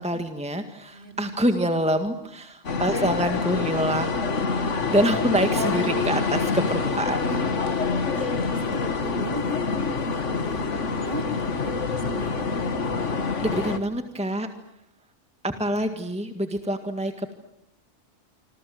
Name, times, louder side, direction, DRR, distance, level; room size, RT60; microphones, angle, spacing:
voice 1, 0.0-4.2 4.9-7.4 8.2-8.5 13.4-14.5 15.4-17.3, right 1 dB, 5° right, 7 dB, 1.9 m, -26 dB
voice 2, 0.9-1.3 1.6-1.8 3.1-3.2 3.9-4.2 7.9-12.5, right 2 dB, 45° right, 4 dB, 4.7 m, -39 dB
sound 1, 2.6-13.8, left 4 dB, 75° left, 2.1 m, -26 dB
27.0 x 26.5 x 7.9 m, 0.74 s
omnidirectional pair, 1.2 m